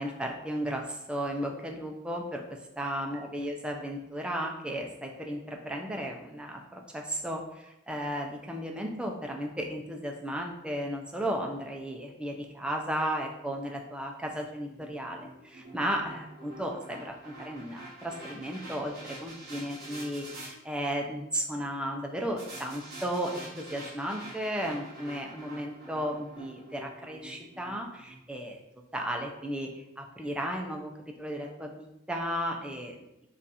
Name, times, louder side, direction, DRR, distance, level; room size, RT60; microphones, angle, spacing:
voice 1, 0.0-28.6 28.9-30.9 31.2-33.0, equal, 5° right, 2 dB, 0.4 m, -34 dB
sound 1, 14.3-20.5 22.4-28.6, right 1 dB, 50° right, 1.3 m, -47 dB
3.8 x 2.4 x 4.1 m, 0.89 s
head